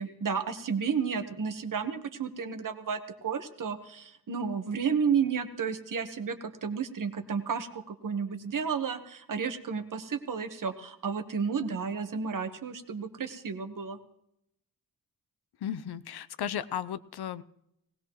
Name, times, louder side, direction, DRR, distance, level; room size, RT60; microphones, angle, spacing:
voice 1, 0.0-14.0, right 6 dB, 55° right, 9 dB, 1.3 m, -32 dB
voice 2, 15.6-17.4, left 9 dB, 85° left, 15 dB, 0.7 m, -35 dB
19.0 x 18.5 x 3.1 m, 0.78 s
wide cardioid pair, 150°, 38 cm